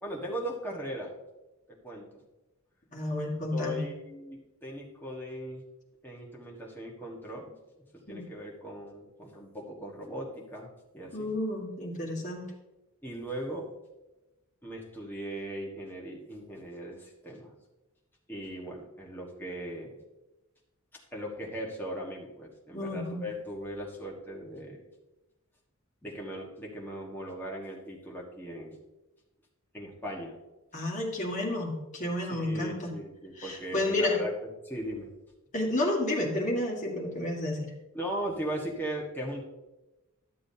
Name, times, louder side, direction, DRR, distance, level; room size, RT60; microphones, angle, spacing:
voice 1, 0.0-1.1 1.7-2.2 3.5-5.6 6.0-7.6 7.9-11.3 13.0-13.7 14.6-17.5 18.3-20.0 21.1-24.8 26.0-28.8 29.7-30.4 32.2-35.1 37.9-39.5, equal, 10° left, -3 dB, 1.4 m, -38 dB
voice 2, 2.9-3.8 8.1-8.2 11.1-12.4 22.7-23.2 30.7-32.9 33.4-34.2 35.5-37.7, left 1 dB, 35° left, -1 dB, 1.7 m, -31 dB
12.0 x 7.5 x 2.8 m, 1.0 s
head